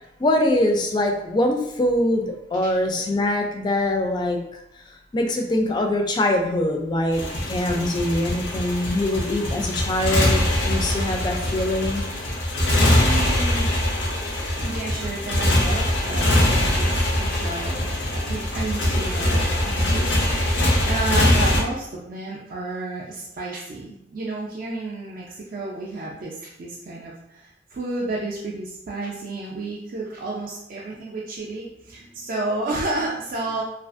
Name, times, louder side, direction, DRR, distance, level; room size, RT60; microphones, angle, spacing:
voice 1, 0.2-4.5 5.1-12.0, left 1 dB, 25° left, 3 dB, 0.3 m, -23 dB
Motorcycle, 7.1-21.6, left 1 dB, 90° left, 0.6 m, -22 dB
voice 2, 12.9-13.7 14.6-33.6, right 2 dB, 50° right, -4 dB, 0.4 m, -31 dB
2.4 x 2.4 x 2.4 m, 0.84 s
head